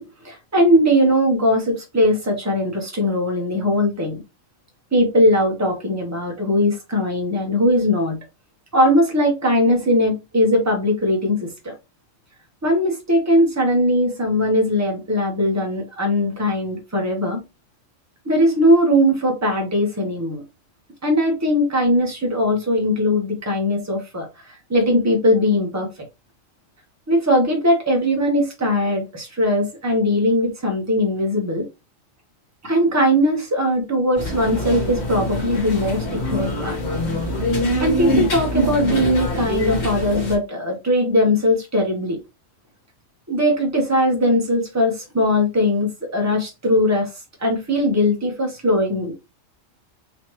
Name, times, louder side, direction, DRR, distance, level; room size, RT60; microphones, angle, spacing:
voice 1, 0.0-4.2 4.9-8.2 8.7-11.7 12.6-17.4 18.2-20.4 21.0-26.1 27.1-31.7 32.6-36.8 37.8-42.2 43.3-49.2, left 1 dB, 15° right, 1.1 m, -20 dB
sound 1, 34.2-40.4, left 1 dB, 60° left, 1.6 m, -24 dB
4.0 x 3.2 x 3.0 m
omnidirectional pair, 1.3 m